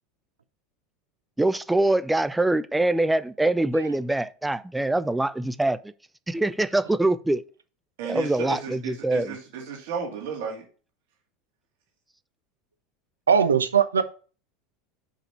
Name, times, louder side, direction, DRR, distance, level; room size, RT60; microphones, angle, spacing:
voice 1, 1.4-5.9 6.3-7.4 8.0-9.4, right 2 dB, 5° right, 0.4 m, -24 dB
voice 2, 8.0-10.6, right 6 dB, 55° right, 2.2 m, -33 dB
voice 3, 13.3-14.0, right 7 dB, 75° right, 0.6 m, -19 dB
5.2 x 4.9 x 5.8 m
figure-of-eight pair, 75°, 0 cm